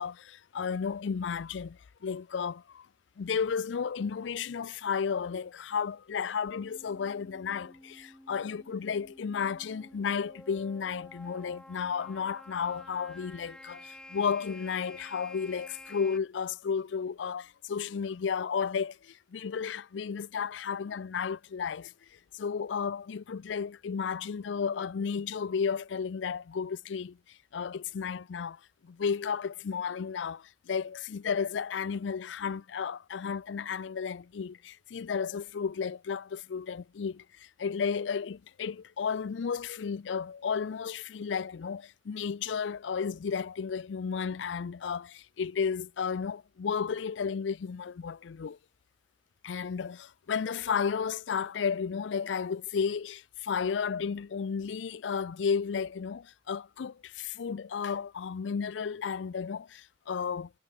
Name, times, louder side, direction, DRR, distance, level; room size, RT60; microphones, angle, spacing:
voice 1, 0.0-2.9 3.2-21.9 22.3-48.6 49.4-60.5, left 6 dB, 90° left, 0.4 m, -33 dB
sound 1, 6.5-16.2, left 1 dB, 5° left, 0.3 m, -51 dB
head